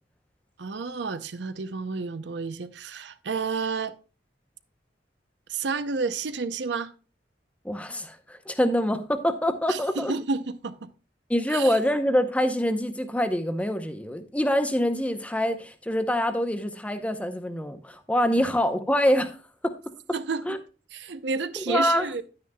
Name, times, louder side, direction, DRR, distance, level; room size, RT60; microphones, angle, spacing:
voice 1, 0.6-3.9 5.5-6.9 9.7-10.9 11.5-11.8 20.1-20.5 20.9-22.2, right 4 dB, 75° right, 0.6 m, -30 dB
voice 2, 7.6-10.1 11.3-19.4 19.6-19.8 20.5-20.6 21.6-22.2, equal, 10° left, 0.7 m, -25 dB
10.0 x 9.5 x 2.2 m
head